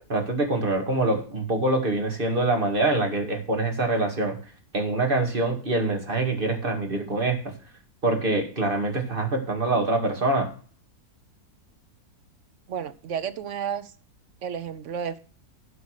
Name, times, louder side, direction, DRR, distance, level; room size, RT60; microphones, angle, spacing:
voice 1, 0.1-4.4 4.7-7.4 8.0-10.5, right 2 dB, 35° right, 3 dB, 2.3 m, -25 dB
voice 2, 12.7-13.9 14.4-15.2, right 8 dB, 55° right, 12 dB, 1.0 m, -31 dB
11.5 x 5.5 x 6.4 m, 0.42 s
omnidirectional pair, 1.7 m